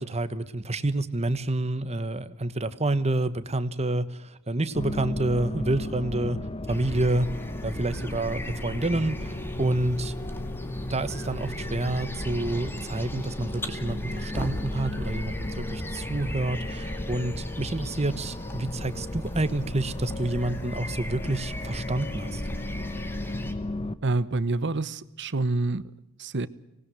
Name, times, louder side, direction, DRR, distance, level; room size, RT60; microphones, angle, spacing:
voice 1, 0.0-4.0 4.5-6.4 6.7-7.3 7.6-9.3 9.6-10.1 10.9-22.4, right 2 dB, 30° right, 1.3 m, -28 dB
sound 1, 4.7-23.9, left 1 dB, 25° left, 1.0 m, -35 dB
sound 2, 6.7-23.5, equal, 10° left, 2.2 m, -38 dB
voice 2, 24.0-25.8 26.2-26.5, right 2 dB, 55° right, 1.0 m, -27 dB
25.0 x 19.5 x 7.9 m
head